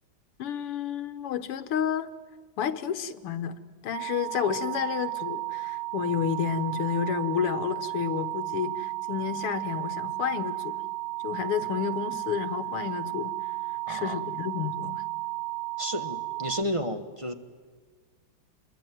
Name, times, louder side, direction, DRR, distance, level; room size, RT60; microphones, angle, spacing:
voice 1, 0.4-2.1 2.6-3.6 3.8-10.9 11.2-13.4 13.9-15.0, left 8 dB, 90° left, 11 dB, 2.2 m, -30 dB
sound 1, 3.9-16.6, right 21 dB, 50° right, 1.3 m, -34 dB
voice 2, 13.9-14.2 15.8-17.3, equal, 20° right, 8 dB, 1.1 m, -32 dB
27.5 x 22.5 x 9.4 m, 1.5 s
omnidirectional pair, 2.4 m